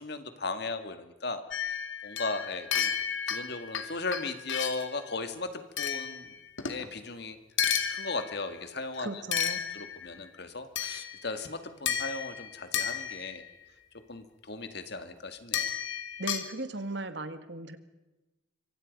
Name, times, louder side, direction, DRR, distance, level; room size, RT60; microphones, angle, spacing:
voice 1, 0.0-2.9 3.3-6.4 6.7-7.4 7.9-9.2 9.7-13.4 13.9-15.7, left 3 dB, 55° left, 9 dB, 2.0 m, -37 dB
sound 1, 1.5-4.9 5.8-6.9 7.6-8.5 9.3-10.2 10.8-11.4 11.9-13.5 15.5-16.5, left 8 dB, 75° left, 2.3 m, -33 dB
voice 2, 9.0-9.6 16.2-17.8, right 2 dB, 60° right, 10 dB, 1.9 m, -37 dB
25.5 x 25.0 x 5.4 m, 1.1 s
head